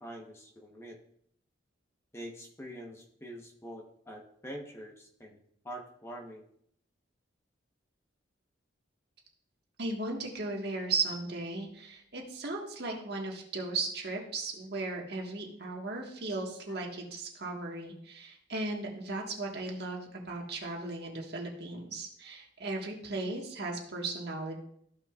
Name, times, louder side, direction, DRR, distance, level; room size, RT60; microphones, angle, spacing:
voice 1, 0.0-0.9 2.1-5.4 5.6-6.4, equal, 15° left, 0 dB, 1.0 m, -45 dB
voice 2, 9.8-24.6, right 3 dB, 55° right, 0 dB, 1.5 m, -36 dB
14.0 x 6.3 x 2.4 m, 0.69 s
head